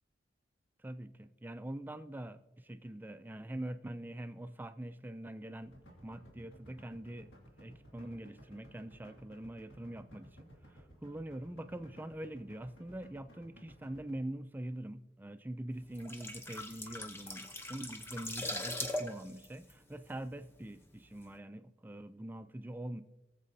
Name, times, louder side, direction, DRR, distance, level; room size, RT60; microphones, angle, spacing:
voice 1, 0.8-7.3 7.6-23.0, right 1 dB, 10° right, 0.3 m, -44 dB
sound 1, 5.6-14.1, equal, 75° left, 2.1 m, -57 dB
sound 2, 15.8-20.6 20.9-21.2, left 1 dB, 15° left, 0.7 m, -41 dB
18.5 x 7.5 x 2.7 m
head